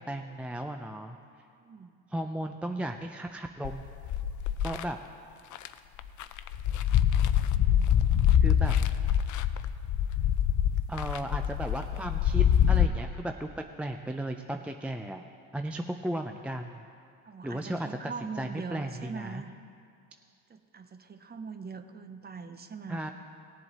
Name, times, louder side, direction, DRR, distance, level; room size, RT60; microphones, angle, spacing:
voice 1, 0.1-1.2 2.1-3.8 4.6-5.0 8.4-8.8 10.9-13.5 13.8-15.3 15.5-16.8 17.4-19.4 22.9-23.1, right 1 dB, 5° right, 5 dB, 0.4 m, -35 dB
voice 2, 1.6-1.9 7.4-7.9 8.7-8.9 17.2-19.5 20.5-23.1, right 5 dB, 25° right, 9 dB, 0.8 m, -42 dB
sound 1, 3.6-4.8 5.5-5.7 6.0-12.9, left 9 dB, 55° left, 0.5 m, -25 dB
17.5 x 7.6 x 4.1 m, 2.4 s
supercardioid pair, 85°, 37 cm